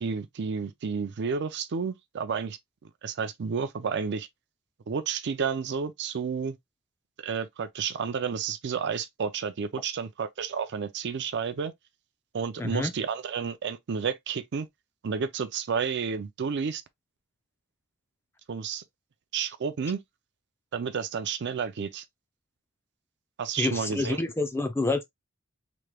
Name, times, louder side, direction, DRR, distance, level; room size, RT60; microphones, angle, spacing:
voice 1, 0.0-2.6 3.0-4.3 4.9-6.6 7.2-11.7 12.3-14.7 15.0-16.8 18.5-18.8 19.3-20.0 20.7-22.0 23.4-24.2, right 6 dB, 55° right, 0.4 m, -31 dB
voice 2, 12.6-12.9 23.6-25.0, left 2 dB, 10° left, 0.4 m, -27 dB
3.3 x 3.0 x 2.2 m
head